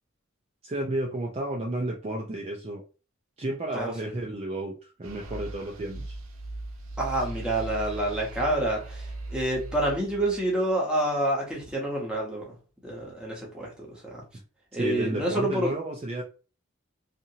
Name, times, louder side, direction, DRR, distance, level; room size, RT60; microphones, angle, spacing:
voice 1, 0.6-2.8 3.4-6.2 14.7-16.2, right 1 dB, 30° right, 0.4 m, -32 dB
voice 2, 3.7-4.1 7.0-12.6 12.8-14.2 14.7-15.7, right 1 dB, 5° right, 0.9 m, -28 dB
sound 1, 5.0-10.5, right 2 dB, 80° right, 0.5 m, -39 dB
2.8 x 2.5 x 2.7 m
head